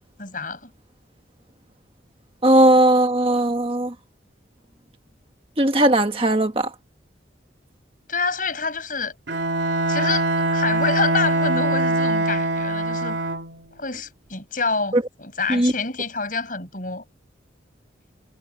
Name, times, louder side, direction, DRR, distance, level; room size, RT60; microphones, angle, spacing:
voice 1, 0.2-0.7 8.1-9.1 9.9-13.2 13.8-17.0, left 4 dB, 45° left, 6.6 m, -27 dB
voice 2, 2.4-3.9 5.6-6.7 15.5-15.7, right 1 dB, 30° right, 1.5 m, -17 dB
Bowed string instrument, 9.3-13.6, right 2 dB, 65° right, 3.2 m, -22 dB
head